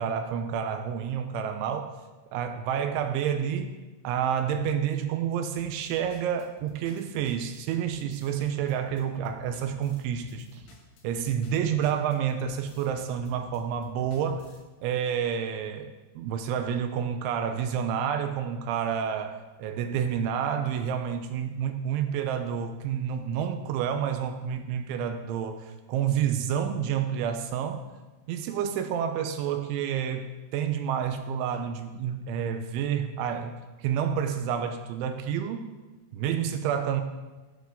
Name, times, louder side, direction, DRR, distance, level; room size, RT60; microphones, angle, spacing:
voice 1, 0.0-1.9 2.3-3.7 4.0-10.6 11.0-14.5 14.8-27.8 28.3-33.5 33.8-35.7 36.1-37.0, right 8 dB, 80° right, 7 dB, 3.0 m, -29 dB
sound 1, 5.5-14.7, left 4 dB, 80° left, 4.0 m, -54 dB
16.5 x 9.3 x 3.8 m, 1.2 s
omnidirectional pair, 5.6 m